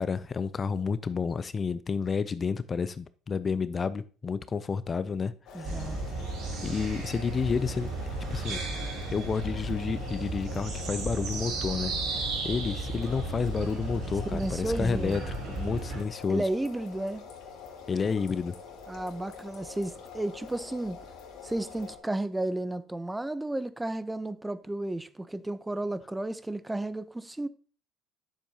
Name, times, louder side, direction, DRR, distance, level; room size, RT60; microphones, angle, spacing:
voice 1, 0.0-5.9 6.6-7.9 8.3-8.6 9.1-16.5 17.9-18.6, left 5 dB, 35° left, 0.5 m, -30 dB
sound 1, 5.5-22.0, left 5 dB, 65° left, 2.0 m, -45 dB
voice 2, 5.5-6.0 14.3-15.2 16.3-17.2 18.9-21.0 21.4-27.5, right 1 dB, 10° right, 0.7 m, -33 dB
sound 2, 5.6-16.0, right 3 dB, 65° right, 3.4 m, -34 dB
9.9 x 7.2 x 2.8 m
hypercardioid pair, 75°, 0 cm